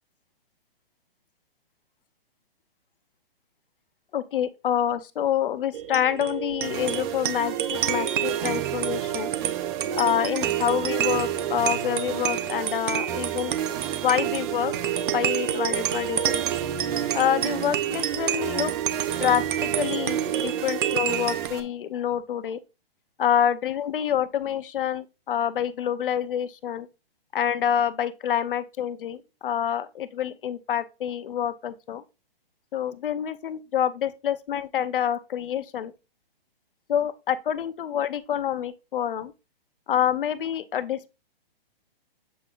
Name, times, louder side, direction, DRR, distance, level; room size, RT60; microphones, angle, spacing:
voice 1, 4.1-9.3 10.0-13.5 14.0-14.7 15.1-16.5 17.1-18.7 19.2-22.6 23.2-26.9 27.3-32.0 32.7-35.9 36.9-39.3 39.9-41.1, left 9 dB, 60° left, 0.9 m, -27 dB
sound 1, 5.7-21.5, right 9 dB, 60° right, 1.0 m, -28 dB
sound 2, 6.6-21.6, right 11 dB, 25° right, 0.8 m, -35 dB
8.3 x 5.0 x 2.5 m
hypercardioid pair, 145°, 30 cm